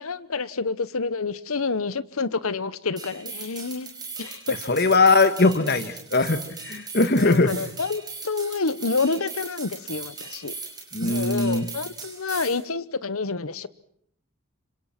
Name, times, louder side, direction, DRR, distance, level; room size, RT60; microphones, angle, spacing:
voice 1, 0.0-3.9 4.2-4.6 7.2-10.5 11.0-13.7, left 4 dB, 75° left, 1.0 m, -28 dB
sound 1, 3.0-12.6, right 4 dB, 20° right, 5.2 m, -39 dB
voice 2, 4.7-7.5 10.9-11.7, left 3 dB, 45° left, 1.6 m, -20 dB
26.5 x 26.0 x 6.0 m
head